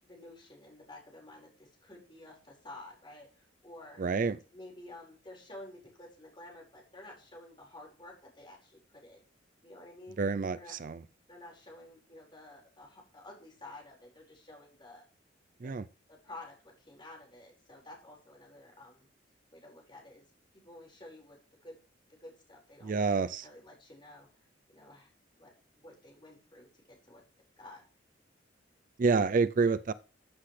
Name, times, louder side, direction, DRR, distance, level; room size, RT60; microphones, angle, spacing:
voice 1, 0.0-4.0 4.5-9.2 9.6-10.2 10.5-10.8 11.3-15.0 15.6-15.8 16.1-19.1 19.5-20.3 20.5-21.4 21.6-21.8 22.1-24.3 24.7-25.5 25.8-27.2 27.6-27.8, left 1 dB, 25° left, 4.9 m, -51 dB
voice 2, 4.0-4.4 10.2-11.0 15.6-15.9 22.8-23.4 29.0-29.9, right 4 dB, 45° right, 0.4 m, -28 dB
14.5 x 7.9 x 3.3 m
head